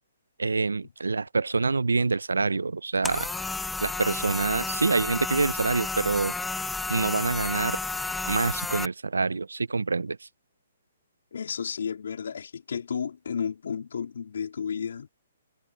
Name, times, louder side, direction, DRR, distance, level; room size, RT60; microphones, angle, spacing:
voice 1, 0.4-3.3 3.8-6.3 6.9-7.8 8.3-10.2, right 4 dB, 85° right, 0.9 m, -26 dB
sound 1, 3.0-8.9, left 3 dB, 5° left, 0.8 m, -31 dB
voice 2, 11.3-15.1, left 6 dB, 70° left, 4.4 m, -32 dB
hypercardioid pair, 135°, 0 cm